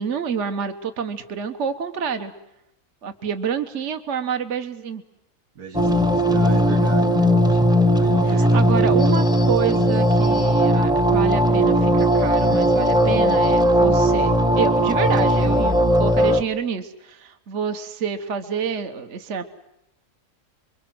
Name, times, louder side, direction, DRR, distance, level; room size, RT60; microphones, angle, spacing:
voice 1, 0.0-2.3 3.0-5.0 8.5-19.4, right 6 dB, 55° right, 8 dB, 1.6 m, -28 dB
voice 2, 5.6-7.6 8.0-9.2, right 5 dB, 90° right, 5 dB, 2.4 m, -33 dB
sound 1, 5.7-16.4, equal, 5° right, 0.8 m, -18 dB
27.5 x 23.5 x 7.8 m, 0.81 s
omnidirectional pair, 1.5 m